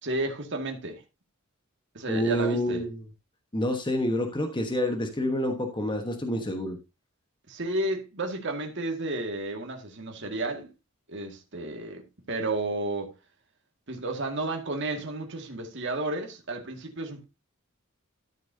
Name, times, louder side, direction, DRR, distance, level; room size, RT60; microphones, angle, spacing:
voice 1, 0.0-1.0 1.9-2.9 7.5-10.7 11.1-13.1 13.9-17.2, right 2 dB, 55° right, 2.1 m, -32 dB
voice 2, 2.1-2.9 3.5-6.8, equal, 20° left, 1.3 m, -28 dB
13.0 x 7.0 x 2.8 m
head